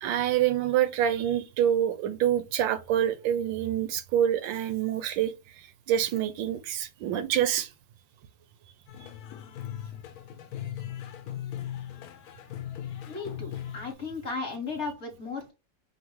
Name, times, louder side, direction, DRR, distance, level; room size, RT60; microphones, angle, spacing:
voice 1, 0.0-5.3 5.9-7.7 9.0-9.1, right 10 dB, 80° right, 1.3 m, -26 dB
sound 1, 8.9-13.9, left 11 dB, 70° left, 0.9 m, -38 dB
voice 2, 13.1-15.5, left 4 dB, 45° left, 1.1 m, -35 dB
5.2 x 2.7 x 3.0 m
omnidirectional pair, 2.1 m